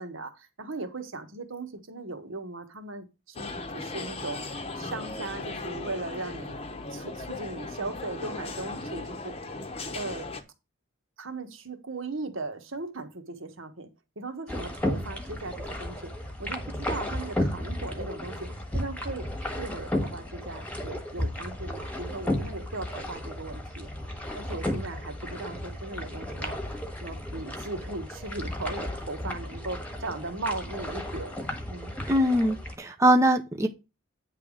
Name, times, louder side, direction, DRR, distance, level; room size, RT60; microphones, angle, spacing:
voice 1, 0.0-6.6 6.9-9.3 9.9-10.3 11.2-13.9 14.2-16.1 16.4-19.3 19.6-23.9 24.3-26.6 27.0-31.9, right 3 dB, 70° right, 1.4 m, -38 dB
sound 1, 3.4-10.4, left 3 dB, 30° left, 0.9 m, -37 dB
sound 2, 14.5-32.7, left 1 dB, 5° left, 1.3 m, -34 dB
voice 2, 32.1-33.7, right 1 dB, 15° right, 0.6 m, -22 dB
9.5 x 3.5 x 6.3 m
head